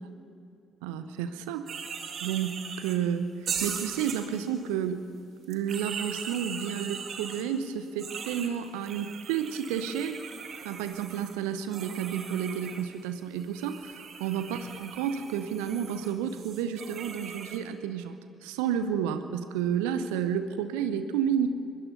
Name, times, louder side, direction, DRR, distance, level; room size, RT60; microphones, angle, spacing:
voice 1, 0.8-1.7 2.2-5.1 5.5-10.2 10.6-21.5, right 8 dB, 70° right, 10 dB, 1.0 m, -31 dB
sound 1, 1.7-3.0 3.4-4.6 5.4-7.4 8.0-12.8 13.3-17.6, right 6 dB, 50° right, 2.1 m, -39 dB
24.5 x 21.0 x 5.6 m, 2.6 s
figure-of-eight pair, 40°, 0 cm